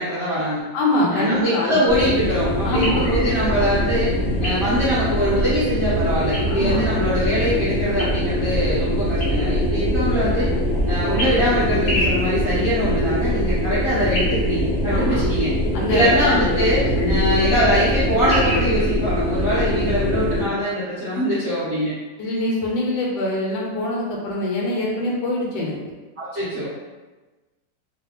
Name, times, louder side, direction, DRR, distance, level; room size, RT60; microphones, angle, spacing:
voice 1, 0.0-0.6 1.1-4.1 4.4-10.5 10.9-15.5 15.9-21.9 26.2-26.7, equal, 50° right, -13 dB, 1.0 m, -22 dB
voice 2, 0.7-1.8 2.6-3.1 6.5-6.8 14.9-15.2 15.7-16.1 17.0-17.2 22.2-25.8, left 1 dB, 90° left, -3 dB, 1.3 m, -24 dB
sound 1, 1.9-20.4, equal, 65° left, 0.7 m, -22 dB
3.2 x 2.3 x 2.7 m, 1.2 s
omnidirectional pair, 2.0 m